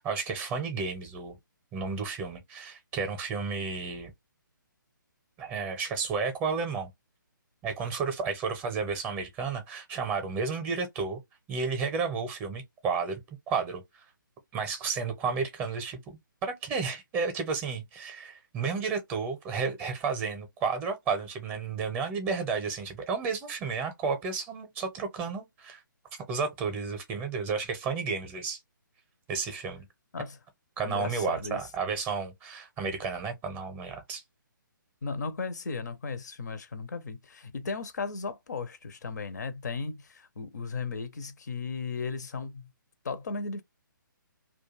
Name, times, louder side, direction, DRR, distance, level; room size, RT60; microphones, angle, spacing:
voice 1, 0.0-1.4 1.7-4.1 5.4-6.9 7.6-11.2 11.5-13.2 13.5-14.0 14.5-25.8 26.3-28.6 29.3-29.9 30.8-34.2, right 5 dB, 15° right, 0.6 m, -32 dB
voice 2, 30.8-31.6 35.0-42.7 43.0-43.6, left 4 dB, 55° left, 0.5 m, -36 dB
2.3 x 2.2 x 3.0 m
figure-of-eight pair, 140°, 11 cm